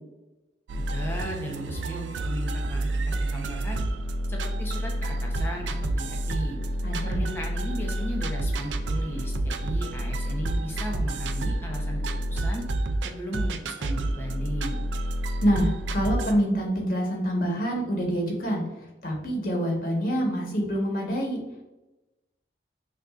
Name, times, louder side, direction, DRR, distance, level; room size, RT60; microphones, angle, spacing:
voice 1, 0.7-3.8 4.3-6.6 7.0-12.6 13.0-14.8, equal, 10° left, -1 dB, 0.7 m, -36 dB
sound 1, 0.7-16.3, right 1 dB, 85° right, 0.4 m, -29 dB
voice 2, 6.8-7.3 15.4-21.4, equal, 50° left, -1 dB, 1.1 m, -26 dB
5.8 x 2.6 x 2.4 m, 1.0 s
head